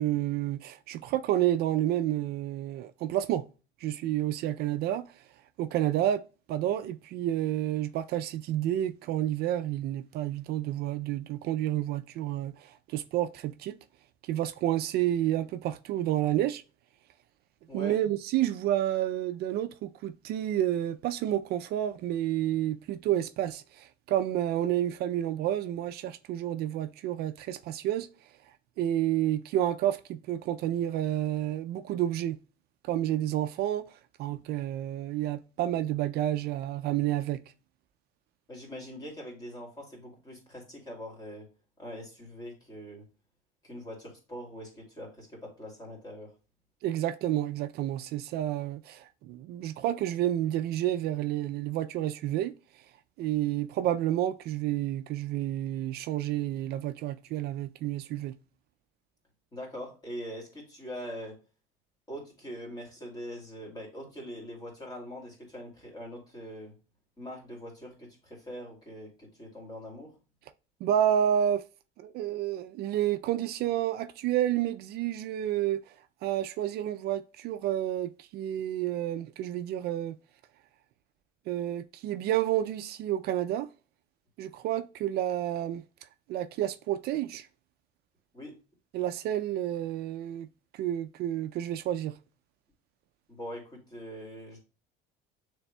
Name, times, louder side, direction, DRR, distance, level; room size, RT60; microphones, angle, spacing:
voice 1, 0.0-3.4 3.8-5.2 5.6-6.2 6.5-13.8 14.2-16.6 17.7-28.1 28.8-32.4 32.8-37.4 46.8-52.8 53.2-58.3 70.8-71.6 72.0-75.9 76.2-80.2 81.5-83.7 84.4-85.8 86.3-87.5 88.9-90.5 90.7-92.2, right 12 dB, 55° right, 0.4 m, -30 dB
voice 2, 38.5-41.5 41.8-43.0 43.6-46.3 59.5-61.4 62.1-66.8 67.2-70.2 88.3-88.5 93.3-94.6, equal, 20° left, 2.4 m, -42 dB
6.9 x 3.3 x 2.2 m
cardioid pair, 130°, 19 cm